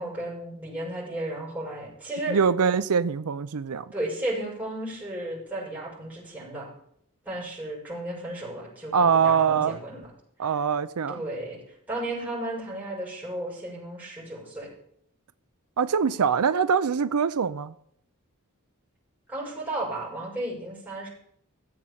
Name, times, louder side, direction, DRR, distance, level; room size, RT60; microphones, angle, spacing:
voice 1, 0.0-2.4 3.9-6.7 7.2-10.1 11.1-11.6 11.9-14.7 19.3-21.1, right 1 dB, 5° right, 6.7 m, -34 dB
voice 2, 2.3-3.9 8.9-9.8 10.4-11.2 15.8-17.7, right 6 dB, 90° right, 0.5 m, -23 dB
15.0 x 7.7 x 7.2 m
head